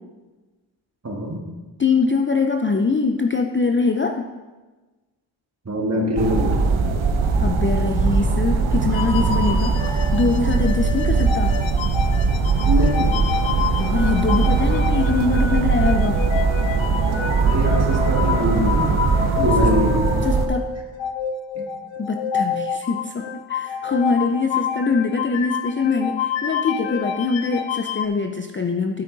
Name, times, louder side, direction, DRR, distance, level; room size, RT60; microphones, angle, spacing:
voice 1, 1.0-1.4 5.7-6.6 12.6-13.2 17.4-19.0 19.4-20.0 21.6-21.7, left 1 dB, 35° right, 1 dB, 1.8 m, -23 dB
voice 2, 1.8-4.3 7.4-9.8 10.1-11.6 13.8-16.2 19.4-19.7 20.2-20.7 22.0-29.0, left 4 dB, 25° left, 5 dB, 0.4 m, -23 dB
sound 1, 6.2-20.5, right 5 dB, 80° right, 0.9 m, -20 dB
sound 2, 8.9-28.1, left 7 dB, 70° left, 0.6 m, -28 dB
9.0 x 8.5 x 3.9 m, 1.2 s
wide cardioid pair, 100°, 47 cm